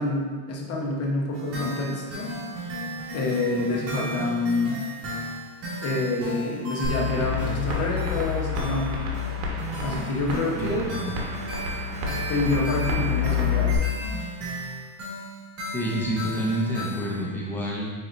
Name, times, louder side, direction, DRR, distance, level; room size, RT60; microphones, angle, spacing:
voice 1, 0.0-2.3 3.1-4.8 5.8-8.9 9.8-10.9 12.3-13.8, left 2 dB, 30° left, -2 dB, 0.9 m, -27 dB
sound 1, 1.3-17.2, right 1 dB, 30° right, 1.5 m, -35 dB
sound 2, 6.8-13.8, left 7 dB, 45° right, 1.2 m, -28 dB
voice 2, 10.6-11.1 15.7-17.9, right 1 dB, 5° left, -4 dB, 0.4 m, -28 dB
4.7 x 4.2 x 2.5 m, 1.5 s
supercardioid pair, 130°, 49 cm